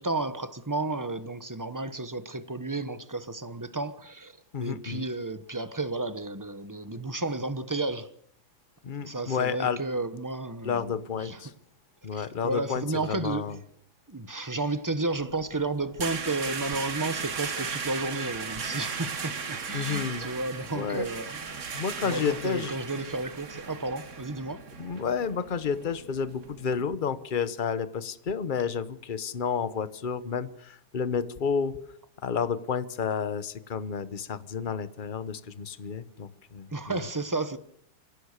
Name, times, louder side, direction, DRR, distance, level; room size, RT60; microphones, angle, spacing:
voice 1, 0.0-4.3 4.6-8.1 9.0-10.9 11.2-11.4 12.1-13.6 14.1-21.7 22.0-24.6 36.7-37.6, right 2 dB, 20° right, 0.6 m, -32 dB
voice 2, 4.5-5.1 8.8-9.8 10.6-11.5 12.0-13.6 19.7-20.3 20.7-21.1 21.7-22.8 24.8-31.8 32.2-37.0, left 6 dB, 35° left, 0.8 m, -31 dB
sound 1, 15.2-26.8, right 5 dB, 40° right, 1.6 m, -37 dB
25.5 x 17.0 x 6.7 m
omnidirectional pair, 2.3 m